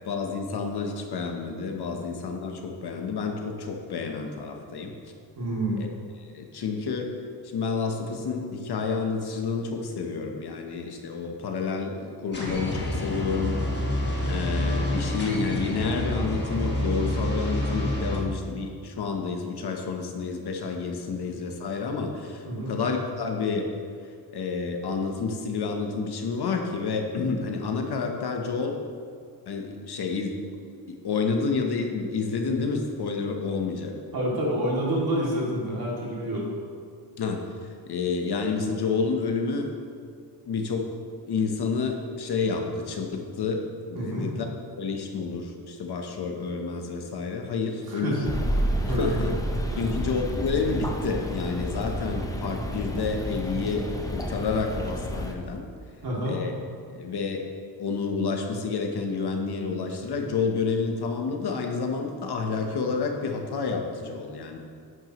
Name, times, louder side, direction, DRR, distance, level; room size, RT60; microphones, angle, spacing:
voice 1, 0.0-4.9 5.8-5.9 6.2-7.1 7.4-13.6 14.2-23.7 24.3-28.8 29.5-30.3 30.9-33.9 37.2-39.7 40.4-40.9 41.3-43.6 43.9-44.5 44.8-48.3 48.8-49.4 49.8-55.6 56.2-56.5 56.9-57.4 57.8-64.6, left 4 dB, 65° left, 3 dB, 1.0 m, -29 dB
voice 2, 5.4-5.9 22.5-22.7 34.1-36.4 43.9-44.3 47.9-48.3 48.8-49.1 49.7-49.8 56.0-56.4, right 1 dB, 55° right, -5 dB, 2.6 m, -28 dB
sound 1, 12.3-18.2, left 1 dB, 25° left, 1.4 m, -28 dB
sound 2, 48.2-55.3, equal, 10° left, 0.6 m, -30 dB
11.0 x 9.1 x 3.0 m, 2.2 s
wide cardioid pair, 175°, 43 cm